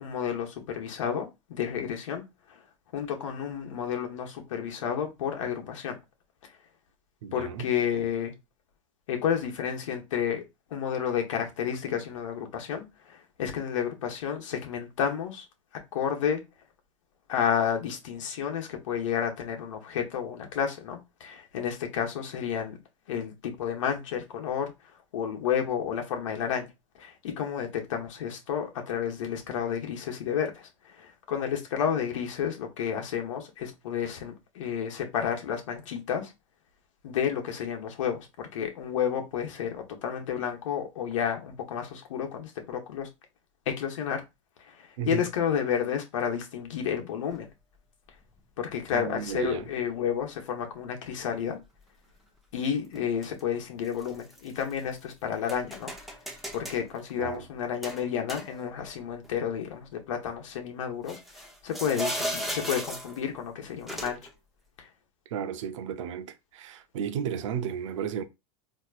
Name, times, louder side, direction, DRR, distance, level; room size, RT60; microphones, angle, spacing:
voice 1, 0.0-2.2 2.9-6.0 7.3-8.3 9.1-10.4 10.7-15.4 15.9-16.4 17.3-22.8 23.1-24.7 25.1-26.7 27.0-36.3 37.0-43.1 43.7-44.2 44.7-47.5 48.6-51.6 52.5-55.9 56.5-61.2 61.6-64.2 64.8-64.9, left 8 dB, 80° left, 1.1 m, -31 dB
voice 2, 7.2-7.7 45.0-45.2 48.9-49.7 57.2-57.4 65.3-68.2, right 8 dB, 75° right, 0.7 m, -33 dB
sound 1, 47.3-47.4 48.4-48.5 49.4-49.7 53.0-53.4 53.8-55.0 55.5-56.8 57.8-58.9 59.2-59.3 61.1-63.3 63.9-64.3, equal, ahead, 0.8 m, -36 dB
4.3 x 2.9 x 2.5 m
hypercardioid pair, 110°, 16 cm